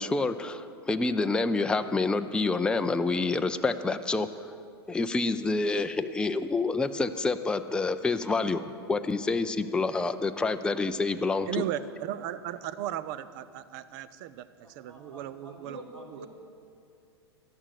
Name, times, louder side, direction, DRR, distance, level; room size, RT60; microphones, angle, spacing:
voice 1, 0.0-4.3 4.9-8.6 8.9-11.5, left 3 dB, 5° left, 8 dB, 0.5 m, -27 dB
voice 2, 11.5-15.8 16.1-16.2, right 11 dB, 50° right, 15 dB, 0.6 m, -36 dB
voice 3, 14.6-16.3, right 1 dB, 85° right, 0 dB, 2.5 m, -47 dB
13.0 x 11.0 x 6.5 m, 2.5 s
figure-of-eight pair, 100°, 14 cm